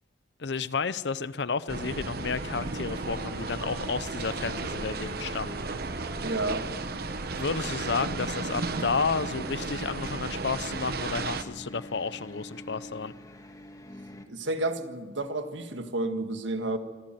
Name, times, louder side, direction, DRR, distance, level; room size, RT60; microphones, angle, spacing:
voice 1, 0.4-5.6 7.3-13.1, left 5 dB, 60° left, 16 dB, 0.6 m, -31 dB
sound 1, 1.7-11.4, right 3 dB, 55° right, 1.0 m, -34 dB
Wind instrument woodwind instrument, 2.1-9.3, right 1 dB, 25° right, 3.4 m, -47 dB
voice 2, 6.2-6.7 14.3-16.8, right 2 dB, 75° right, 7 dB, 1.7 m, -31 dB
sound 2, 9.2-14.3, left 1 dB, 20° left, 1.6 m, -45 dB
25.5 x 12.0 x 9.2 m, 1.4 s
head